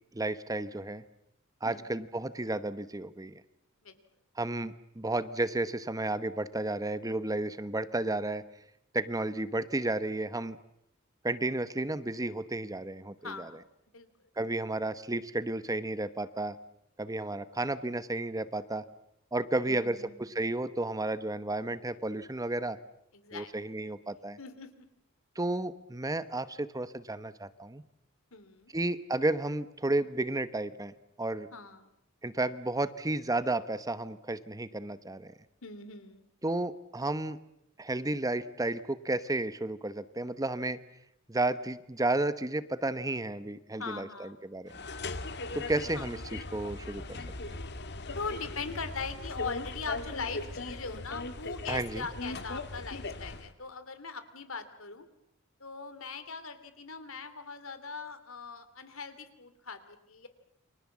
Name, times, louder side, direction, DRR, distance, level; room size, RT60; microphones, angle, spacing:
voice 1, 0.1-1.0 1.6-3.4 4.4-8.4 8.9-10.6 11.2-13.5 14.4-16.6 17.0-18.8 19.3-22.8 23.3-24.4 25.4-27.8 28.7-31.5 32.2-35.3 36.4-37.4 37.8-40.8 41.3-44.7 45.5-47.0 51.7-52.1, right 2 dB, 15° right, 13 dB, 1.0 m, -32 dB
voice 2, 13.2-13.6 13.9-14.1 19.6-20.2 23.1-23.5 24.4-24.9 28.3-28.7 31.5-31.9 35.6-36.3 43.8-44.4 45.9-46.1 48.1-55.0 55.6-60.3, left 4 dB, 80° left, 11 dB, 2.9 m, -41 dB
sound 1, 44.7-53.5, left 2 dB, 55° left, 1.7 m, -39 dB
29.5 x 24.5 x 7.4 m, 0.80 s
head